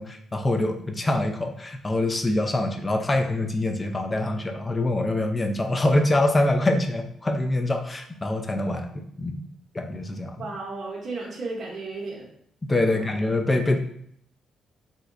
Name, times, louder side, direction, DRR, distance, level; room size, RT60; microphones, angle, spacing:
voice 1, 0.0-9.4 9.7-10.4 12.7-13.8, left 1 dB, 25° left, 4 dB, 0.4 m, -24 dB
voice 2, 10.4-12.3 12.9-13.1, right 3 dB, 50° right, -3 dB, 0.7 m, -34 dB
3.7 x 2.1 x 2.4 m, 0.68 s
cardioid pair, 80°, 0 cm